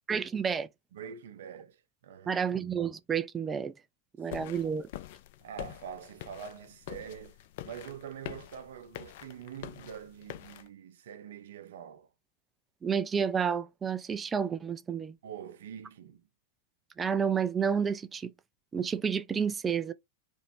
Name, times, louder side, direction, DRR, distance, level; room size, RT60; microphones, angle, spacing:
voice 1, 0.1-0.7 2.3-3.7 4.2-4.9 12.8-15.1 17.0-18.3 18.7-19.9, right 7 dB, 20° right, 0.4 m, -30 dB
voice 2, 0.9-2.5 4.2-4.6 5.4-12.1 15.2-16.3, right 8 dB, 60° right, 0.6 m, -45 dB
sound 1, 4.3-10.7, left 13 dB, 50° left, 0.4 m, -45 dB
3.0 x 2.6 x 4.2 m
figure-of-eight pair, 90°, 0 cm